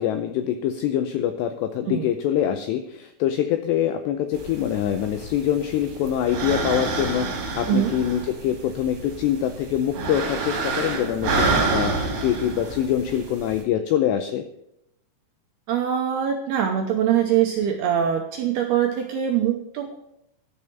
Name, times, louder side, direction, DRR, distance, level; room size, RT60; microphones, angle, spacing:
voice 1, 0.0-14.5, left 10 dB, 85° left, 8 dB, 2.4 m, -24 dB
sound 1, 4.3-13.6, right 3 dB, 50° right, 3.5 m, -28 dB
voice 2, 15.7-20.0, right 9 dB, 80° right, 3 dB, 2.4 m, -23 dB
12.0 x 6.4 x 9.0 m, 0.80 s
omnidirectional pair, 5.7 m